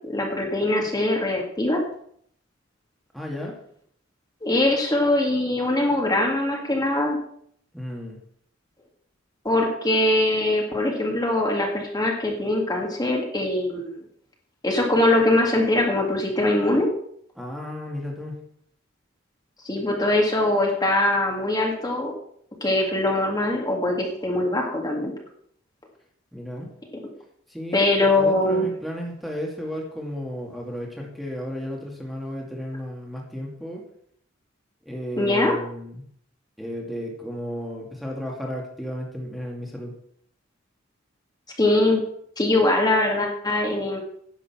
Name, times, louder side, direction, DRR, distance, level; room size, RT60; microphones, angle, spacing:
voice 1, 0.0-1.8 4.4-7.2 9.4-13.9 14.6-16.9 19.6-22.1 22.6-25.1 27.7-28.7 35.2-35.5 41.6-42.0 42.4-44.0, left 1 dB, 20° left, 0 dB, 2.2 m, -22 dB
voice 2, 3.1-3.5 7.7-8.2 17.4-18.4 26.3-26.7 27.5-33.8 34.9-36.1 36.6-39.9, equal, ahead, -2 dB, 2.1 m, -33 dB
10.5 x 6.9 x 7.2 m, 0.65 s
head